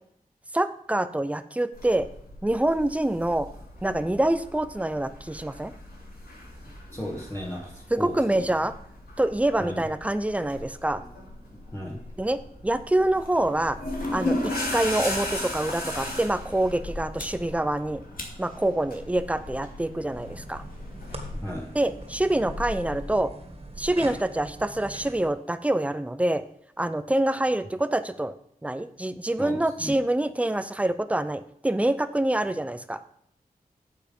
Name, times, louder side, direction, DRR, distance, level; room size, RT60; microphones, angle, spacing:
voice 1, 0.5-2.1 2.4-3.5 3.8-5.7 7.9-8.7 9.2-11.0 12.2-13.8 14.1-18.0 18.4-20.6 21.7-23.3 23.8-26.4 26.8-28.3 28.6-33.0, right 1 dB, 10° right, 12 dB, 0.6 m, -26 dB
sound 1, 1.7-21.3, left 1 dB, 85° left, 4.9 m, -37 dB
voice 2, 6.9-8.5 9.6-9.8 11.7-12.0 21.4-21.7 29.4-29.9, equal, 15° left, -4 dB, 2.0 m, -35 dB
sound 2, 13.1-23.5, left 2 dB, 65° left, 2.1 m, -42 dB
sound 3, 20.1-25.3, right 1 dB, 40° right, 2.1 m, -42 dB
9.1 x 7.4 x 5.3 m, 0.70 s
wide cardioid pair, 95°, 16 cm